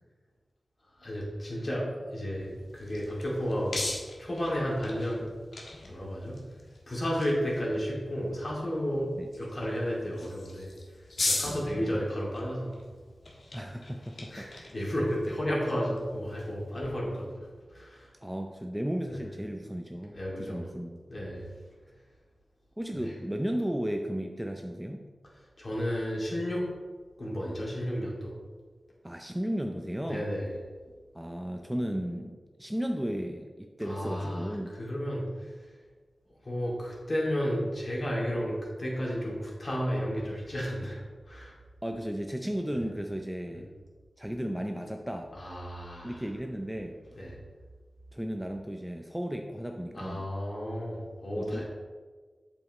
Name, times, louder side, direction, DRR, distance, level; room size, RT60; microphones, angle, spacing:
voice 1, 1.0-3.9 4.2-5.3 5.9-6.4 6.9-9.1 9.4-10.7 11.2-12.8 14.3-17.3 17.7-18.1 19.1-19.2 20.1-20.7 21.1-21.5 23.0-23.1 25.6-26.7 27.2-28.3 30.0-30.5 33.8-35.5 36.4-41.5 43.5-43.6 45.4-46.2 47.1-47.4 49.9-51.6, equal, 45° left, -4 dB, 2.5 m, -32 dB
sound 1, 2.4-16.9, left 2 dB, 75° left, 1.3 m, -40 dB
voice 2, 11.4-12.0 13.5-14.5 18.2-21.0 22.8-25.1 29.0-30.2 31.1-34.7 41.8-43.7 44.2-45.3 46.0-47.0 48.1-50.3 51.4-51.6, equal, 5° right, 3 dB, 0.5 m, -34 dB
8.2 x 7.1 x 3.1 m, 1.4 s
wide cardioid pair, 95°, 0 cm